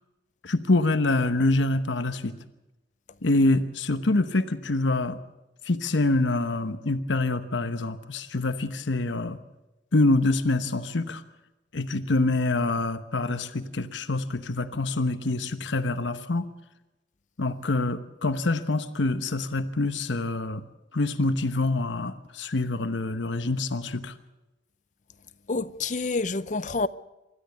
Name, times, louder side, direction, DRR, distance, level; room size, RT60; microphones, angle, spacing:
voice 1, 0.4-2.3 3.2-5.2 5.6-9.4 9.9-11.2 11.7-16.5 17.4-20.6 20.9-24.1, left 2 dB, 80° left, 1.1 m, -25 dB
voice 2, 25.5-26.9, left 3 dB, 40° left, 0.6 m, -28 dB
25.5 x 13.0 x 8.1 m
head